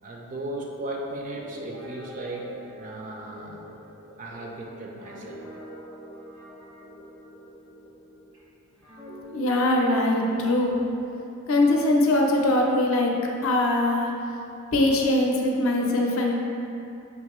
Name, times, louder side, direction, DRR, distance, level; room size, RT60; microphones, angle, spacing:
voice 1, 0.0-3.8 4.2-5.4, right 1 dB, 35° right, -1 dB, 0.4 m, -36 dB
Guitar, 1.2-8.4 8.8-12.5, equal, 80° right, 1.1 m, -45 dB
voice 2, 9.3-10.8 11.5-13.1 13.4-14.1 14.7-16.4, left 1 dB, 65° left, 0 dB, 0.5 m, -22 dB
5.5 x 2.6 x 3.0 m, 2.7 s
head